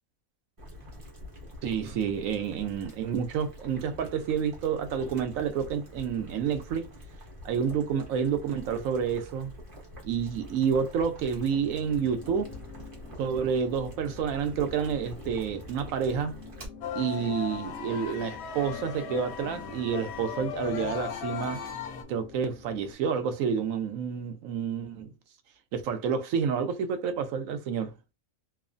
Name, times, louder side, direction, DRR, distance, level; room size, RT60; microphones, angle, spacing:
Boiling, 0.6-16.7, left 1 dB, 25° right, 0.9 m, -46 dB
voice 1, 1.6-6.9 7.4-9.5 10.0-12.5 13.2-16.4 16.9-21.6 22.1-25.1 25.7-27.9, right 7 dB, 80° right, 1.0 m, -29 dB
sound 1, 11.4-23.0, left 4 dB, 85° left, 1.0 m, -48 dB
sound 2, 16.8-22.0, left 8 dB, 65° left, 0.7 m, -37 dB
3.0 x 2.0 x 2.5 m
omnidirectional pair, 1.4 m